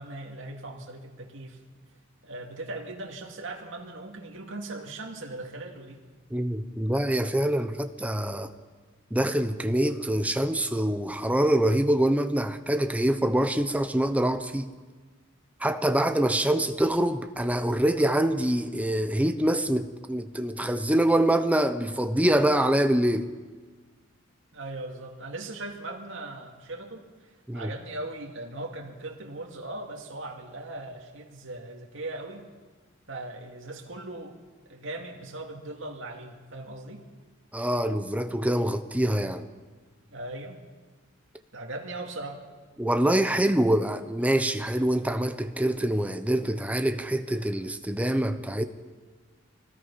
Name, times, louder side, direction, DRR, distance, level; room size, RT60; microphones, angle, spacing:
voice 1, 0.0-1.6 2.2-6.0 15.8-16.1 24.5-32.5 33.1-34.4 34.7-37.1 40.1-40.6 41.5-42.4, right 2 dB, 65° right, 2.5 m, -39 dB
voice 2, 6.3-8.5 9.1-14.7 15.6-23.3 27.5-27.7 37.5-39.5 42.8-48.6, right 1 dB, 5° right, 0.9 m, -25 dB
24.5 x 19.0 x 5.7 m
head